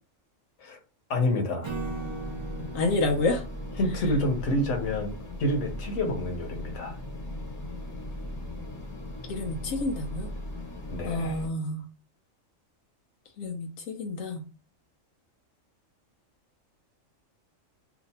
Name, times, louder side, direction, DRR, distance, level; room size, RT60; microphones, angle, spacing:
voice 1, 1.1-1.7 3.8-5.1 5.4-7.0 10.9-11.4, left 1 dB, 70° left, 3 dB, 1.2 m, -28 dB
Acoustic guitar / Strum, 1.6-5.0, right 5 dB, 25° right, 0.7 m, -40 dB
sound 1, 1.7-11.5, left 1 dB, 15° left, 0.9 m, -38 dB
voice 2, 2.7-3.4 9.3-10.3 11.0-11.9 13.4-14.4, left 2 dB, 90° left, 2 dB, 1.1 m, -29 dB
2.8 x 2.6 x 4.1 m, 0.33 s
omnidirectional pair, 1.3 m